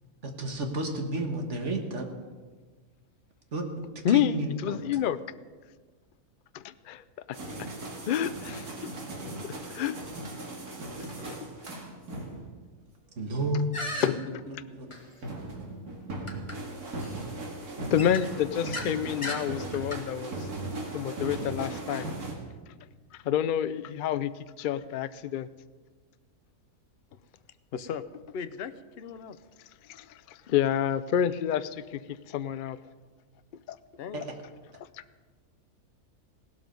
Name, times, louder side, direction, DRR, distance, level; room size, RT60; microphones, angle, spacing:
voice 1, 0.2-2.1 3.5-3.7 4.1-4.8 13.2-13.7 14.0-14.1 14.5-14.9 34.1-34.2, right 2 dB, 50° right, 4 dB, 1.9 m, -32 dB
voice 2, 4.0-5.2 6.5-7.4 8.1-8.9 9.4-10.0 11.0-11.4 14.0-14.2 17.9-20.5 20.9-22.1 23.2-25.5 29.9-32.8 33.7-33.8, left 9 dB, 85° left, 14 dB, 0.4 m, -29 dB
sound 1, 7.3-12.6 15.2-22.3, right 2 dB, 90° right, 2.6 m, -38 dB
sound 2, 13.7-14.1 14.9-15.0 16.3-16.6 17.0-17.1 18.0-18.9 19.2-19.4 19.7-20.0, left 1 dB, 20° left, 1.4 m, -35 dB
voice 3, 27.7-28.0 28.3-29.4 34.0-34.2, left 7 dB, 55° left, 12 dB, 0.7 m, -37 dB
17.0 x 12.5 x 5.3 m, 1.4 s
omnidirectional pair, 1.6 m